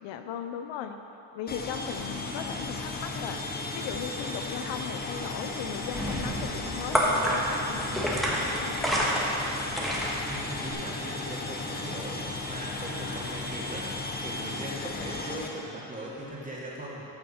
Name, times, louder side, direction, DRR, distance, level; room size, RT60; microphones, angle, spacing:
voice 1, 0.0-1.0 1.3-3.4 3.7-8.1 8.5-9.2 14.4-14.6, left 8 dB, 65° left, 7 dB, 0.7 m, -38 dB
sound 1, 1.5-15.5, left 3 dB, 20° left, 1.0 m, -35 dB
sound 2, 5.6-10.7, equal, ahead, 1.5 m, -29 dB
voice 2, 10.3-17.1, right 1 dB, 15° right, -5 dB, 2.2 m, -40 dB
14.0 x 6.3 x 4.4 m, 3.0 s
cardioid pair, 110°, 48 cm